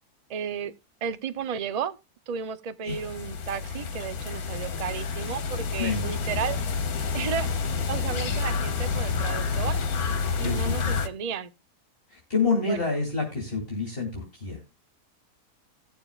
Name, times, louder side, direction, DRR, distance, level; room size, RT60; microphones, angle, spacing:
voice 1, 0.3-0.7 1.0-2.0 2.3-6.6 7.1-7.6 7.8-9.8 10.4-11.5 12.6-12.8, right 8 dB, 55° right, 0.4 m, -33 dB
sound 1, 2.9-11.1, left 5 dB, 70° left, 1.6 m, -29 dB
voice 2, 5.8-6.4 10.3-10.9 12.1-14.6, left 4 dB, 35° left, 3.0 m, -28 dB
18.5 x 7.0 x 2.4 m
omnidirectional pair, 1.6 m